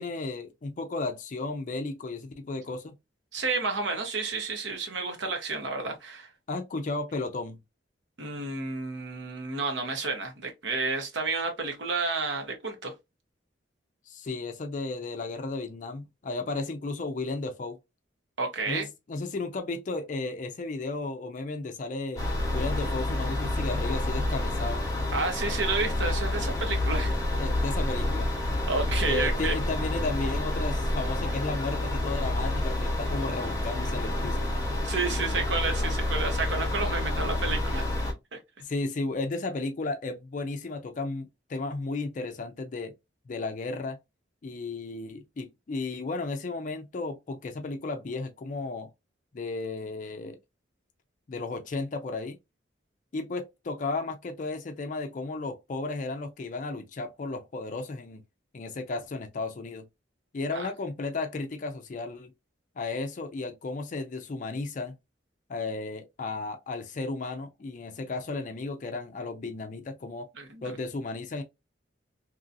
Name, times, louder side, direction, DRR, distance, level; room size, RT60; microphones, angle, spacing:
voice 1, 0.0-2.9 6.5-7.6 14.1-17.8 18.7-22.3 22.5-24.9 27.4-28.3 29.1-34.5 38.6-42.9 43.3-44.0 44.4-48.9 49.3-50.4 51.3-52.4 53.1-58.2 58.5-59.8 60.3-62.3 62.8-65.0 65.5-70.3 70.6-71.4, left 3 dB, 45° left, 0.4 m, -34 dB
voice 2, 3.3-6.3 8.2-12.9 18.4-18.8 25.1-27.1 28.7-29.5 34.8-37.9 38.3-38.4 60.5-60.7 70.4-70.7, right 3 dB, 75° right, 0.9 m, -31 dB
sound 1, 22.2-38.1, left 1 dB, 20° left, 0.9 m, -29 dB
2.9 x 2.5 x 2.5 m
head